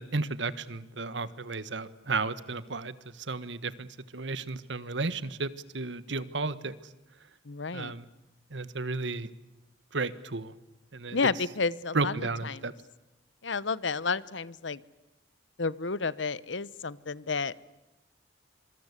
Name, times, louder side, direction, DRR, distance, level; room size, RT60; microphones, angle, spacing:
voice 1, 0.0-6.7 7.7-8.0 8.5-9.3 9.9-10.5 10.9-11.2 11.9-12.7, right 3 dB, 75° right, 16 dB, 1.4 m, -33 dB
voice 2, 7.5-7.9 11.1-12.1 12.4-12.7 13.4-14.8 15.6-17.5, left 4 dB, 80° left, 19 dB, 1.0 m, -31 dB
26.0 x 24.0 x 8.3 m, 1.0 s
head